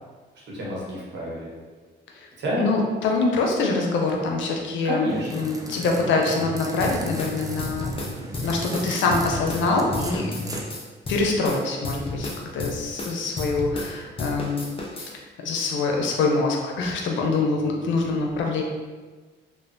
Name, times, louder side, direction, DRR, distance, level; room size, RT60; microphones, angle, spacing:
voice 1, 0.5-1.5 2.4-2.7 4.8-5.5, equal, 70° right, -5 dB, 1.0 m, -29 dB
voice 2, 2.6-5.1 5.3-7.9 8.4-10.3 11.1-14.6 14.9-15.1 15.4-18.6, left 3 dB, 80° left, 1 dB, 0.5 m, -24 dB
sound 1, 5.1-10.6, right 1 dB, 20° right, 0.3 m, -35 dB
sound 2, 6.8-9.7 9.9-13.9 14.2-15.1, left 2 dB, 30° left, 0.6 m, -32 dB
3.1 x 2.1 x 2.6 m, 1.4 s
cardioid pair, 85°, 19 cm